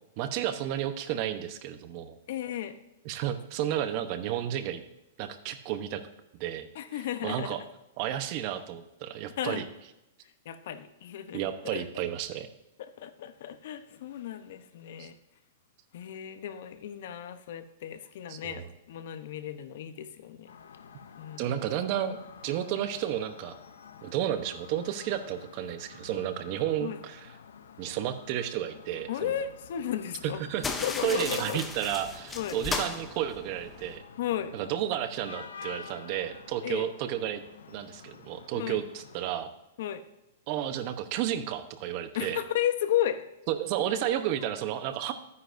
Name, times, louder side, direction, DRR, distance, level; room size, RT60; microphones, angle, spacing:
voice 1, 0.2-2.2 3.0-4.8 5.2-6.0 6.3-7.6 8.0-9.6 11.3-12.5 15.0-15.1 18.3-18.7 21.4-22.2 22.4-23.5 24.0-27.3 27.8-29.3 30.2-30.7 31.0-34.0 34.5-37.4 37.7-39.5 40.5-42.4 43.5-45.1, right 11 dB, 40° right, 10 dB, 0.9 m, -32 dB
voice 2, 2.3-2.8 6.7-7.6 9.4-9.6 10.4-11.8 12.8-15.2 15.9-20.6 21.2-21.7 26.8-27.0 29.1-30.4 30.8-31.6 32.3-32.6 34.2-34.6 36.6-36.9 38.5-38.8 39.8-40.0 42.1-43.2, left 11 dB, 60° left, 10 dB, 0.9 m, -34 dB
sound 1, 20.5-39.3, left 6 dB, 90° left, 0.7 m, -50 dB
sound 2, 30.6-34.0, left 4 dB, 10° left, 0.7 m, -36 dB
12.5 x 9.5 x 2.7 m, 0.92 s
hypercardioid pair, 150°, 0 cm